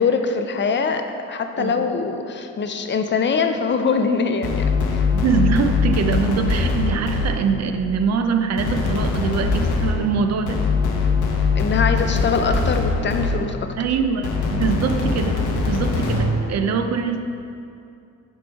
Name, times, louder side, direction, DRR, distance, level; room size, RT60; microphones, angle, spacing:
voice 1, 0.0-5.0 11.5-13.7, left 5 dB, 40° left, 7 dB, 0.4 m, -23 dB
voice 2, 1.6-1.9 5.1-10.6 13.8-17.2, right 5 dB, 60° right, 6 dB, 0.5 m, -23 dB
sound 1, 4.4-7.7 8.6-13.7 14.2-16.4, left 4 dB, 80° left, 0.8 m, -22 dB
5.1 x 4.8 x 4.6 m, 2.5 s
cardioid pair, 90°, 30 cm